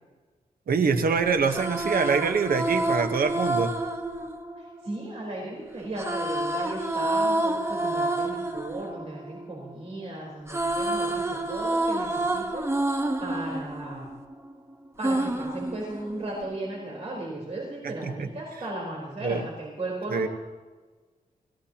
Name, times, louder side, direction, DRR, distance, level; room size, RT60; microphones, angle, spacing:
voice 1, 0.7-3.7 17.8-18.3 19.2-19.5 20.1-20.3, right 5 dB, 85° right, 7 dB, 1.2 m, -25 dB
sound 1, 1.5-5.4 6.0-10.0 10.3-14.5 15.0-16.5, right 1 dB, 15° right, 1.2 m, -29 dB
voice 2, 4.6-14.1 15.0-20.3, right 1 dB, 45° right, -3 dB, 4.1 m, -36 dB
25.5 x 16.0 x 2.9 m, 1.3 s
wide cardioid pair, 120°, 15 cm